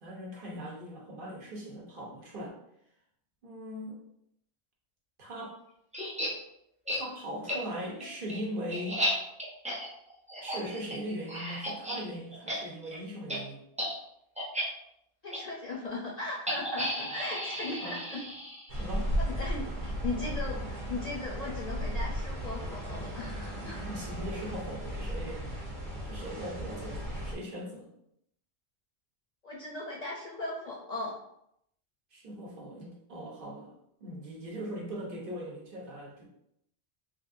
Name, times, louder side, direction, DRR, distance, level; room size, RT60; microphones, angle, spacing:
voice 1, 0.0-2.6 3.4-4.0 5.2-5.6 6.9-9.0 10.4-13.6 17.8-18.0 18.7-19.1 23.9-25.5 26.0-27.9 32.1-33.7 34.0-36.3, equal, 55° right, -3 dB, 1.0 m, -40 dB
sound 1, 5.9-6.3 6.9-7.0 7.5-7.6 8.0-12.0 12.3-12.6 12.8-13.0 13.3-13.4 13.7-13.9 14.4-14.6 15.3-15.4 16.5-18.8, equal, 10° right, 0.3 m, -34 dB
voice 2, 15.2-18.2 19.2-23.8 29.4-31.1, left 2 dB, 50° left, -4 dB, 0.5 m, -38 dB
sound 2, 18.7-27.3, equal, 90° right, 1.2 m, -35 dB
3.3 x 2.6 x 2.5 m, 0.75 s
omnidirectional pair, 1.1 m